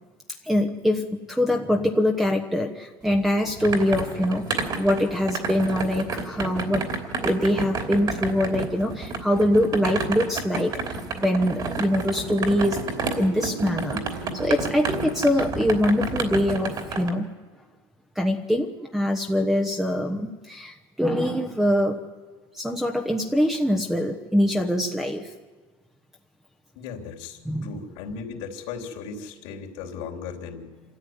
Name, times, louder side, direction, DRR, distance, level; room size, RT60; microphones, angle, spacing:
voice 1, 0.4-6.9 7.2-12.8 13.2-14.0 14.3-17.3 18.2-22.0 22.5-25.3 27.5-27.7, left 1 dB, 5° right, 4 dB, 1.1 m, -24 dB
sound 1, 3.1-17.1, right 4 dB, 40° right, 3.1 m, -31 dB
sound 2, 12.5-17.3, right 6 dB, 90° right, 1.5 m, -42 dB
voice 2, 26.7-30.7, left 6 dB, 75° left, 0 dB, 3.4 m, -37 dB
26.5 x 13.5 x 9.5 m, 1.4 s
supercardioid pair, 125°, 11 cm